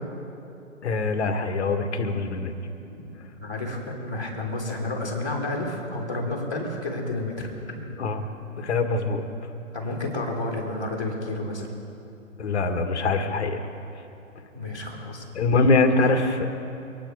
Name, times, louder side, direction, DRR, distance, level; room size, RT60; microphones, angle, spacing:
voice 1, 0.8-2.5 8.0-8.2 8.6-9.2 12.4-13.6 15.3-16.5, left 3 dB, 55° left, 7 dB, 1.7 m, -23 dB
voice 2, 3.4-7.5 7.7-7.8 9.7-11.7 14.5-15.2, left 2 dB, 5° left, -18 dB, 0.4 m, -30 dB
24.5 x 9.8 x 4.8 m, 2.8 s
hypercardioid pair, 150°, 41 cm